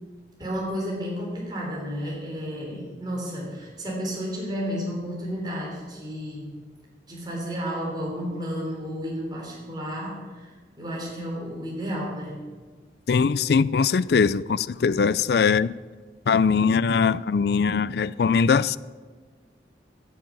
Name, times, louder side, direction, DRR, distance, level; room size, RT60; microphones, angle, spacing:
voice 1, 0.4-6.5 7.1-10.5 10.8-12.4 15.4-15.5, equal, 25° right, 3.5 m, -32 dB
voice 2, 13.1-15.8 16.3-18.8, left 5 dB, 60° left, 0.4 m, -21 dB
15.0 x 7.4 x 7.3 m
head